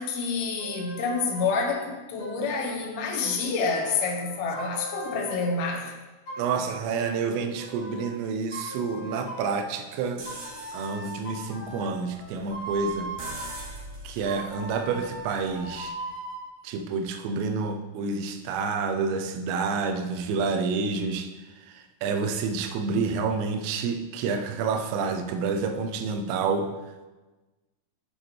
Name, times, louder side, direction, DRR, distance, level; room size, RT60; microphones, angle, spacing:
voice 1, 0.0-5.9, left 4 dB, 85° left, 2.2 m, -28 dB
sound 1, 0.6-1.6 2.2-5.6 6.3-8.1 8.5-9.6 10.3-13.6 14.3-16.5, right 2 dB, 45° left, 3.7 m, -39 dB
voice 2, 6.4-10.2 10.7-13.1 14.0-15.9 16.6-21.3 21.7-26.7, right 4 dB, 85° right, 3.3 m, -29 dB
sound 2, 10.2-16.0, right 2 dB, 65° right, 2.0 m, -44 dB
8.0 x 6.8 x 4.3 m
omnidirectional pair, 5.9 m